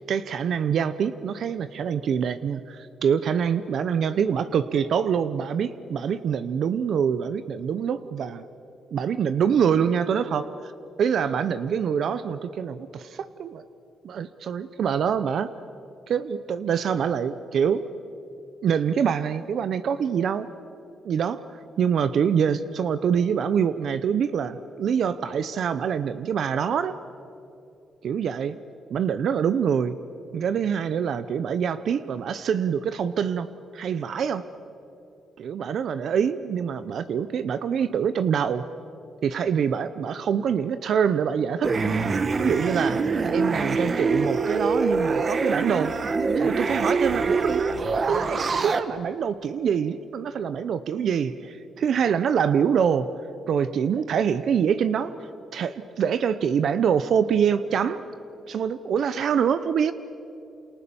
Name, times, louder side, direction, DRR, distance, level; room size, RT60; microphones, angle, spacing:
voice 1, 0.1-8.4 8.9-10.5 11.0-13.6 14.0-15.5 16.1-17.9 18.6-20.5 21.0-21.4 21.8-27.0 28.0-28.6 28.9-30.0 30.3-33.5 33.7-34.5 35.4-38.6 39.2-41.7 42.4-43.0 43.3-46.0 46.4-47.6 48.1-53.1 53.5-55.1 55.5-58.0 58.5-59.9, right 7 dB, 65° right, 13 dB, 0.8 m, -25 dB
sound 1, 41.6-48.8, right 4 dB, 40° right, 1.3 m, -24 dB
29.0 x 28.0 x 7.1 m, 2.9 s
cardioid pair, 115°, 0 cm